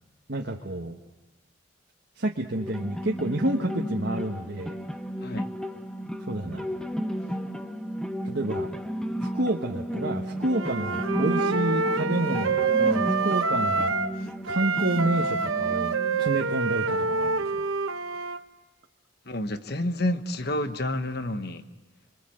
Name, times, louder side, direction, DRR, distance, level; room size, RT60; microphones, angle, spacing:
voice 1, 0.3-0.9 2.2-4.8 6.3-6.7 8.2-8.7 9.2-13.9 14.5-17.6, right 1 dB, 60° right, 0 dB, 1.5 m, -29 dB
sound 1, 2.5-17.5, equal, 5° left, 1.0 m, -33 dB
Wind instrument woodwind instrument, 10.5-14.2 14.4-18.4, right 4 dB, 85° right, 1.0 m, -26 dB
voice 2, 19.3-21.6, left 1 dB, 50° left, 10 dB, 1.2 m, -29 dB
30.0 x 23.5 x 7.8 m, 1.1 s
head